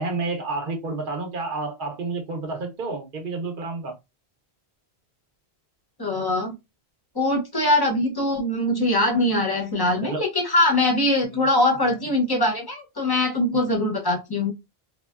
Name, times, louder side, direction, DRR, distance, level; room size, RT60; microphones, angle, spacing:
voice 1, 0.0-3.9 10.0-10.2 11.2-11.4 11.8-11.9 13.5-13.7, right 3 dB, 55° right, 0.9 m, -30 dB
voice 2, 6.0-6.6 7.1-14.5, left 1 dB, 25° left, 0.7 m, -22 dB
3.3 x 2.2 x 2.3 m
omnidirectional pair, 1.1 m